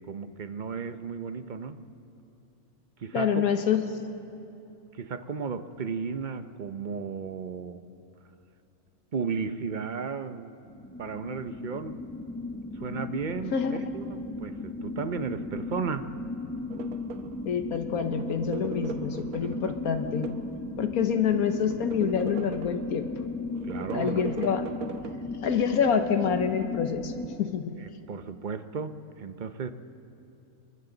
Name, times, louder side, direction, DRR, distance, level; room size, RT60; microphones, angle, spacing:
voice 1, 0.0-1.8 3.0-3.5 4.9-7.8 9.1-10.5 11.0-12.0 12.8-16.1 19.4-19.8 23.6-24.2 27.8-29.7, right 5 dB, 45° right, 9 dB, 0.7 m, -34 dB
voice 2, 3.1-3.8 13.5-13.9 17.4-20.3 20.8-23.1 23.9-24.6 25.4-27.1 27.4-27.8, left 7 dB, 75° left, 7 dB, 1.4 m, -27 dB
sound 1, 10.7-27.4, left 2 dB, 15° left, 0.7 m, -36 dB
sound 2, 16.7-17.5 18.0-20.6 21.0-23.0 23.5-25.2, right 7 dB, 75° right, 1.2 m, -40 dB
29.5 x 23.0 x 3.9 m, 2.9 s
omnidirectional pair, 1.6 m